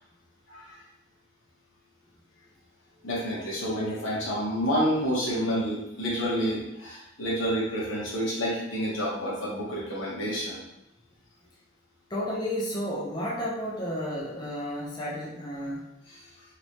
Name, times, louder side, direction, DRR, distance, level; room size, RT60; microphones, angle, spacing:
voice 1, 3.0-10.6 16.1-16.3, equal, 70° left, -6 dB, 1.2 m, -29 dB
voice 2, 12.1-15.9, equal, 20° left, -5 dB, 0.5 m, -32 dB
3.2 x 3.1 x 2.8 m, 0.87 s
head